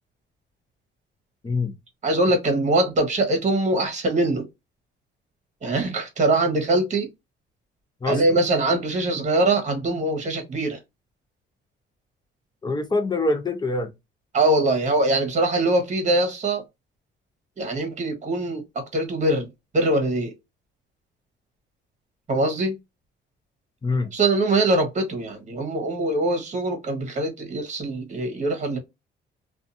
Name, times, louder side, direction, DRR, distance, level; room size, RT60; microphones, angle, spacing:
voice 1, 2.0-4.4 5.6-7.1 8.1-10.8 14.3-16.6 17.6-19.5 19.7-20.3 22.3-22.7 24.1-28.8, right 2 dB, 35° right, 1.1 m, -22 dB
voice 2, 12.6-13.9 23.8-24.1, left 3 dB, 20° left, 0.6 m, -24 dB
2.6 x 2.4 x 2.6 m
cardioid pair, 90°, 20 cm